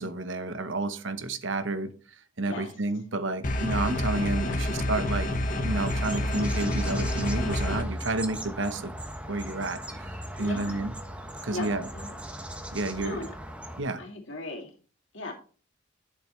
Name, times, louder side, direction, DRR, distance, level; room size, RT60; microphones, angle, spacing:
voice 1, 0.0-5.3 5.6-8.9 9.3-10.9 11.4-11.9 12.7-13.2 13.8-14.0, right 2 dB, 65° right, 10 dB, 0.9 m, -31 dB
sound 1, 3.4-7.8, left 1 dB, 40° left, 1.2 m, -28 dB
sound 2, 5.7-13.8, equal, 5° right, 1.1 m, -38 dB
voice 2, 10.4-10.8 11.5-12.1 12.9-13.3 14.0-14.7 15.1-15.3, left 2 dB, 65° left, 0 dB, 2.4 m, -38 dB
11.5 x 7.0 x 3.2 m, 0.39 s
head